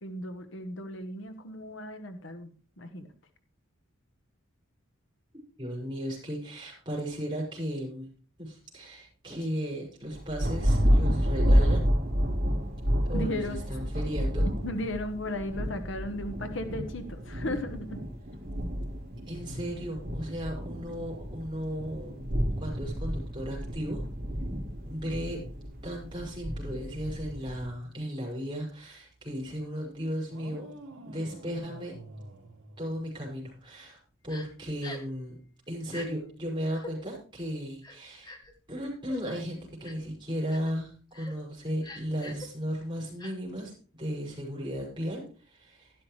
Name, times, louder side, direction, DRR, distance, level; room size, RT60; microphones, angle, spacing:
voice 1, 0.0-3.1 8.9-9.1 13.1-13.6 14.6-18.0, left 1 dB, 60° left, 8 dB, 1.1 m, -36 dB
voice 2, 5.6-8.1 8.4-11.9 13.1-14.5 19.3-22.3 22.6-24.0 24.8-25.5 25.8-30.7 31.1-32.0 32.8-35.4 35.7-38.3 38.7-43.7 44.0-45.9, equal, 20° right, -2 dB, 5.5 m, -35 dB
Thunder, 10.1-27.7, equal, 45° right, 3.2 m, -29 dB
sound 1, 30.3-33.4, right 1 dB, 80° right, 2.3 m, -47 dB
Crying sobbing, 34.3-34.5 34.8-35.1 35.9-36.1 36.7-36.9 37.8-38.5 39.1-39.2 39.8-40.1 40.5-40.7 41.1-41.3 41.8-42.5 43.2-43.3, left 2 dB, 20° left, 1.1 m, -44 dB
12.5 x 11.5 x 3.2 m, 0.38 s
head